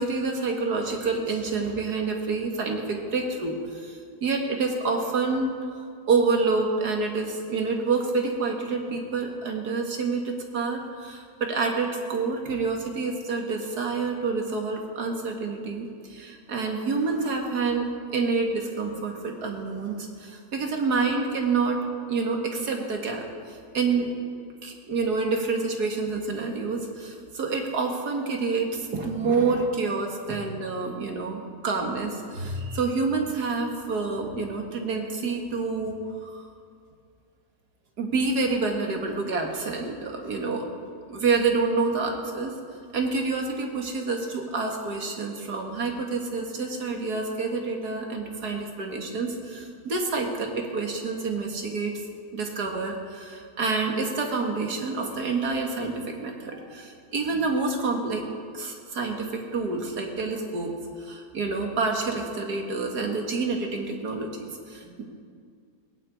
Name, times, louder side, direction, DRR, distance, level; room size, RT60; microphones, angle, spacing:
voice 1, 0.0-5.5 6.1-21.8 22.1-24.2 24.6-36.0 36.2-36.5 38.0-40.7 41.1-42.6 42.9-52.0 52.3-58.2 58.5-65.0, right 4 dB, 75° right, 2 dB, 2.3 m, -28 dB
17.5 x 9.2 x 8.4 m, 2.2 s
omnidirectional pair, 1.7 m